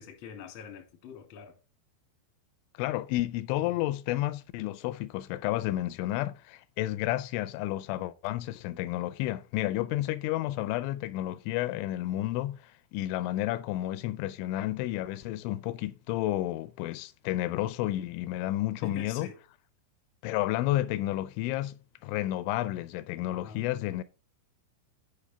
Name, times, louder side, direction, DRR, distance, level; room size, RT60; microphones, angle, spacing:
voice 1, 0.0-1.5 18.8-19.4 23.3-23.6, left 7 dB, 55° left, 1.5 m, -44 dB
voice 2, 2.8-19.3 20.2-24.0, left 15 dB, 85° left, 2.9 m, -31 dB
9.8 x 5.5 x 3.3 m
omnidirectional pair, 5.4 m